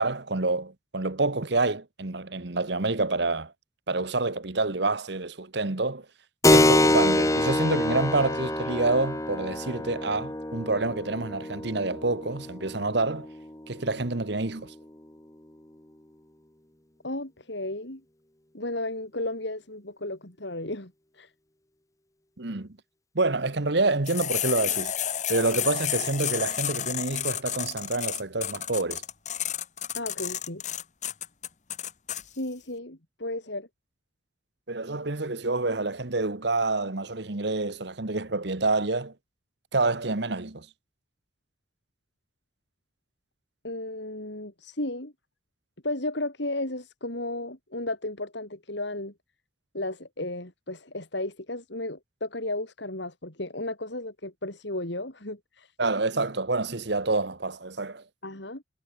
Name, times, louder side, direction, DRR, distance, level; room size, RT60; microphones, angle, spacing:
voice 1, 0.0-3.5 3.9-6.1 6.5-13.3 13.7-14.7 22.4-22.7 23.1-24.9 25.3-29.0 34.7-39.1 39.7-40.7 55.8-58.0, right 3 dB, 55° right, 1.3 m, -27 dB
Keyboard (musical), 6.4-14.6, left 1 dB, 15° left, 1.4 m, -26 dB
voice 2, 17.0-18.0 18.5-21.3 29.9-30.6 32.2-33.7 43.6-45.1 45.8-49.1 49.7-55.7 58.2-58.6, left 2 dB, 60° left, 3.6 m, -34 dB
sound 1, 24.1-32.2, left 10 dB, 35° left, 1.4 m, -31 dB
head